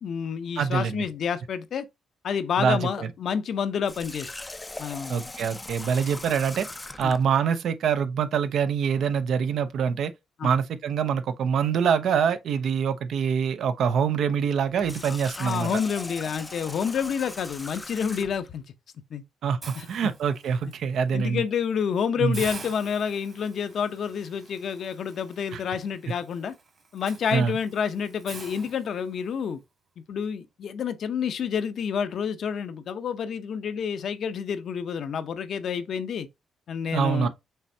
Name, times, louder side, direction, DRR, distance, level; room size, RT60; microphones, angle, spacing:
voice 1, 0.0-1.9 2.2-4.3 4.8-5.3 7.0-7.2 10.4-10.5 15.4-18.6 19.1-19.2 19.7-20.1 21.1-26.5 26.9-29.6 30.1-36.3 36.7-37.3, left 7 dB, 60° left, 0.7 m, -29 dB
voice 2, 0.6-1.0 2.6-3.1 5.1-6.7 7.0-10.1 10.4-15.7 19.4-21.4 22.2-22.4 25.5-25.6 27.3-27.5 36.9-37.3, right 7 dB, 70° right, 0.6 m, -25 dB
Water tap faucet, 3.9-7.3 14.7-18.5, left 2 dB, 15° left, 0.4 m, -40 dB
Hiss, 19.6-20.7 21.2-21.4 21.8-21.9 22.3-29.4, right 4 dB, 40° right, 1.5 m, -45 dB
5.5 x 3.4 x 2.7 m
cardioid pair, 90°, 0 cm